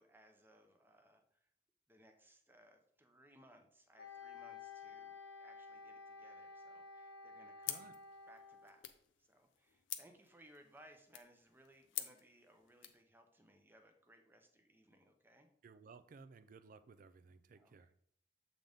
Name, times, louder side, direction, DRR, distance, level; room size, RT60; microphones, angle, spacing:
voice 1, 0.0-1.5 1.9-7.9 8.3-8.9 9.2-15.5 17.6-17.9, right 1 dB, 10° right, 5 dB, 0.7 m, -65 dB
Wind instrument woodwind instrument, 4.0-8.8, left 4 dB, 60° left, 1.1 m, -53 dB
sound 1, 7.6-13.0, left 12 dB, 80° left, 0.6 m, -49 dB
voice 2, 15.6-17.9, right 4 dB, 45° right, 12 dB, 0.4 m, -58 dB
7.5 x 3.9 x 3.5 m, 0.66 s
head